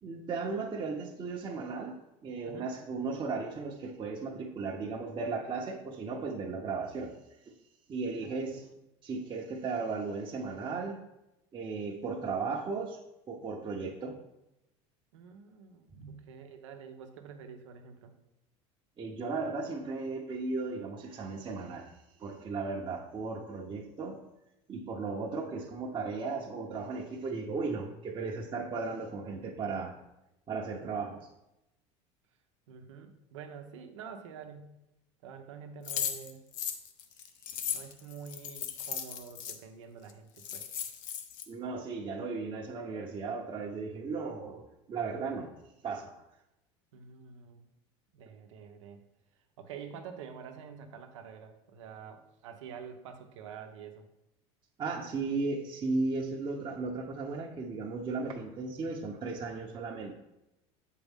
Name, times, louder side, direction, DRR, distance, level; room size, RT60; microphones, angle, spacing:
voice 1, 0.0-1.9 2.2-7.2 7.5-7.6 7.9-8.7 9.0-11.0 11.5-13.0 13.3-14.2 15.9-16.2 19.0-21.9 22.2-24.2 24.7-30.0 30.5-31.3 41.5-45.5 45.8-46.2 54.8-60.1, right 4 dB, 30° right, -1 dB, 0.9 m, -36 dB
voice 2, 15.1-18.1 32.7-34.7 35.2-36.5 37.7-40.6 46.9-47.7 48.1-49.0 49.6-54.1, right 7 dB, 90° right, 6 dB, 0.8 m, -47 dB
sound 1, 35.9-39.6 40.1-40.2 40.4-41.4, left 8 dB, 60° left, 0.8 m, -36 dB
7.2 x 4.6 x 3.6 m, 0.91 s
supercardioid pair, 95°, 15 cm